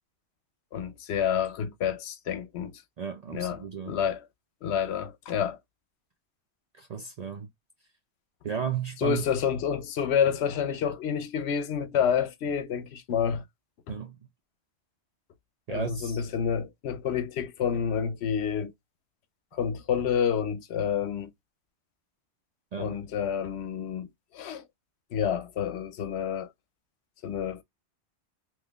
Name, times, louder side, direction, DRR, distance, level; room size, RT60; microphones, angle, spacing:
voice 1, 0.7-2.8 3.3-3.6 3.9-4.3 4.6-5.6 9.0-13.4 13.9-14.0 15.7-18.7 19.5-21.3 22.8-24.6 25.1-26.5 27.2-27.6, left 8 dB, 75° left, 0.9 m, -29 dB
voice 2, 3.0-4.0 6.7-7.5 8.4-9.2 13.9-14.2 15.7-16.2 22.7-23.0, right 7 dB, 55° right, 0.4 m, -34 dB
3.6 x 2.9 x 2.3 m
omnidirectional pair, 1.1 m